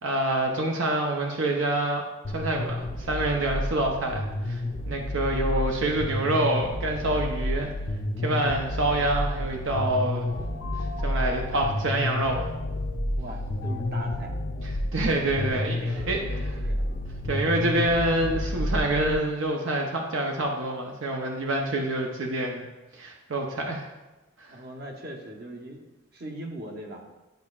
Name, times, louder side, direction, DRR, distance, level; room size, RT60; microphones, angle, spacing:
voice 1, 0.0-2.0 2.3-4.6 4.9-7.7 8.2-10.3 11.0-12.4 14.9-15.8 16.1-16.2 17.3-22.7 22.9-23.8 24.4-24.5, right 1 dB, 85° right, 1 dB, 0.7 m, -26 dB
sound 1, 2.2-19.1, left 1 dB, 40° left, 0.5 m, -30 dB
sound 2, 10.2-15.6, left 5 dB, 85° left, 0.6 m, -42 dB
voice 2, 13.2-14.4 15.2-16.9 24.5-25.9 26.1-27.0, right 1 dB, 55° right, 1 dB, 1.0 m, -40 dB
10.5 x 5.3 x 2.4 m, 1.1 s
head